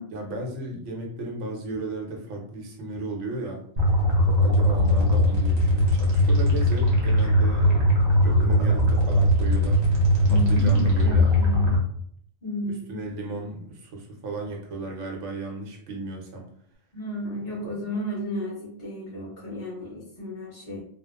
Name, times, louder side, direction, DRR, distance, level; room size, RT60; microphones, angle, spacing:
voice 1, 0.1-3.6 4.4-9.8 10.3-11.3 12.7-16.5 17.5-17.9, right 2 dB, 70° right, 0 dB, 1.0 m, -35 dB
sound 1, 3.8-11.8, left 1 dB, 45° right, 0.6 m, -20 dB
voice 2, 10.3-11.8 12.4-13.0 16.9-20.8, left 1 dB, 30° left, -11 dB, 1.1 m, -33 dB
2.8 x 2.1 x 2.2 m, 0.63 s
omnidirectional pair, 1.4 m